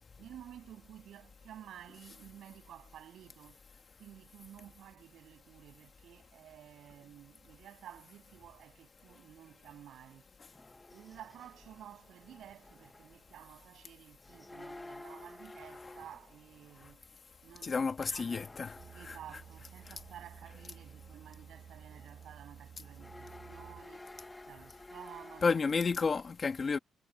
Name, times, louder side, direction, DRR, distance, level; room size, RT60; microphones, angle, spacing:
voice 1, 0.2-3.6 4.0-10.2 10.9-17.0 17.4-18.5 18.9-24.1 24.4-25.6, right 11 dB, 80° right, 8.0 m, -53 dB
sound 1, 10.5-13.5 14.2-16.5 18.2-21.7 21.9-22.3 22.8-25.5, left 2 dB, 10° left, 1.7 m, -53 dB
voice 2, 17.6-19.2 19.9-20.0 25.4-26.8, left 4 dB, 30° left, 1.7 m, -31 dB
sound 2, 18.8-23.8, right 8 dB, 50° right, 5.8 m, -53 dB
wide cardioid pair, 175°, 0 cm